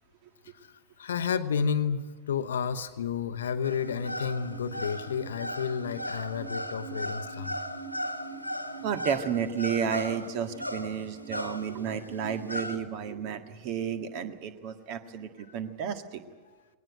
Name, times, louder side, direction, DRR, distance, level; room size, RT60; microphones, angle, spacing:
voice 1, 1.0-7.6, left 6 dB, 65° left, 11 dB, 0.9 m, -31 dB
sound 1, 3.6-12.8, equal, 90° left, 1.6 m, -37 dB
voice 2, 8.8-16.2, right 7 dB, 45° right, 8 dB, 1.8 m, -32 dB
20.5 x 19.0 x 9.1 m, 1.3 s
figure-of-eight pair, 90°, 0 cm